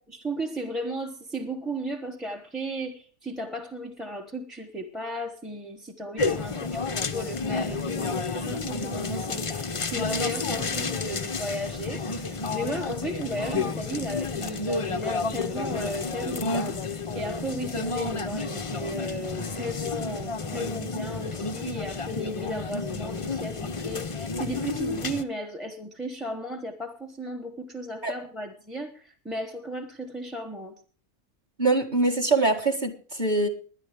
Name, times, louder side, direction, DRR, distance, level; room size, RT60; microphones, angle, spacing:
voice 1, 0.1-30.8, equal, ahead, 5 dB, 0.8 m, -35 dB
sound 1, 6.2-25.2, left 4 dB, 40° left, 0.4 m, -31 dB
voice 2, 31.6-33.5, right 3 dB, 30° right, 5 dB, 1.8 m, -23 dB
20.5 x 10.5 x 3.4 m, 0.41 s
omnidirectional pair, 1.6 m